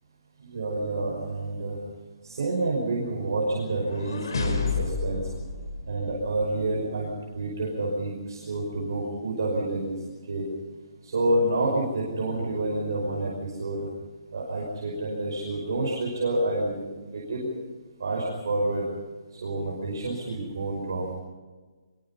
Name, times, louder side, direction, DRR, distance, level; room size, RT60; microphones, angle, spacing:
voice 1, 0.4-1.8 2.2-5.2 5.9-10.0 10.3-10.4 11.0-13.9 14.3-17.5 18.0-18.9 19.4-21.2, right 2 dB, 50° right, -3 dB, 5.6 m, -28 dB
sound 1, 3.5-6.6, left 4 dB, 60° left, 4.8 m, -31 dB
26.0 x 23.0 x 5.7 m, 1.4 s
hypercardioid pair, 180°, 3 cm